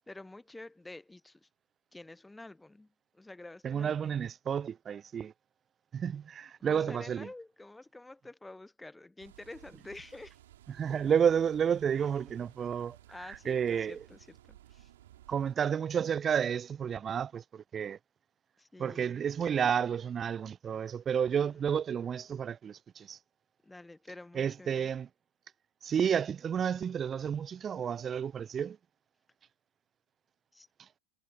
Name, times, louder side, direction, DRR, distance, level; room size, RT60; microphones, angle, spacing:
voice 1, 0.1-1.5 1.9-4.2 6.7-10.4 13.1-14.9 18.6-19.2 21.4-21.6 23.6-24.9 30.5-30.7, left 2 dB, 5° left, 1.2 m, -49 dB
voice 2, 3.6-5.3 5.9-7.3 10.7-13.0 13.3-14.0 15.3-18.0 18.8-23.2 24.3-25.1 25.8-28.8 30.8-30.9, right 8 dB, 20° right, 0.8 m, -31 dB
sound 1, 9.2-15.5, right 13 dB, 55° right, 4.3 m, -57 dB
figure-of-eight pair, 90°, 0 cm